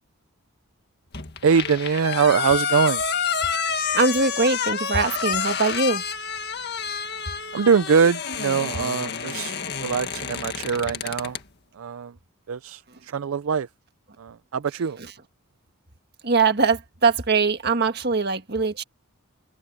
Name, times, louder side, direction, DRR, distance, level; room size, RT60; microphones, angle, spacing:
sound 1, 1.1-11.4, left 7 dB, 50° left, 1.8 m, -29 dB
voice 1, 1.4-3.0 7.5-11.4 11.8-12.1 12.5-13.7 14.2-15.0, right 6 dB, 65° right, 0.4 m, -23 dB
voice 2, 3.7-6.0 16.2-18.8, right 4 dB, 45° right, 1.6 m, -22 dB
head